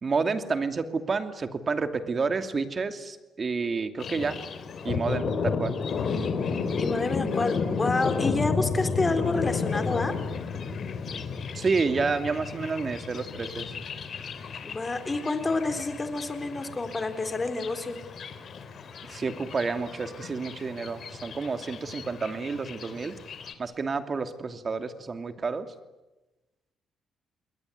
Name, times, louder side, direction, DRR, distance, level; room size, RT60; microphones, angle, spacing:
voice 1, 0.0-4.4 4.8-5.8 11.5-13.7 19.1-23.2 23.6-25.7, right 4 dB, 40° right, 9 dB, 2.6 m, -29 dB
Thunder, 4.0-23.5, left 5 dB, 55° left, 3.3 m, -33 dB
voice 2, 6.8-10.1 14.6-18.0, left 3 dB, 25° left, 8 dB, 4.1 m, -29 dB
28.0 x 21.5 x 9.5 m, 1.1 s
cardioid pair, 90°, 0 cm